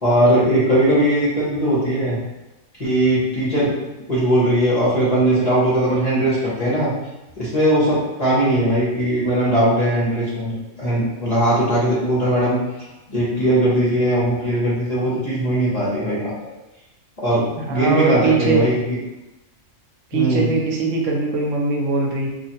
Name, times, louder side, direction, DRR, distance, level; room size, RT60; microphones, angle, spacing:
voice 1, 0.0-2.2 2.8-6.9 7.4-12.6 13.1-16.5 17.2-19.0 20.1-20.5, right 1 dB, 35° left, -8 dB, 0.9 m, -19 dB
voice 2, 17.6-18.7 20.1-22.3, right 4 dB, 70° right, 0 dB, 0.9 m, -21 dB
3.1 x 2.5 x 2.9 m, 0.99 s
omnidirectional pair, 1.4 m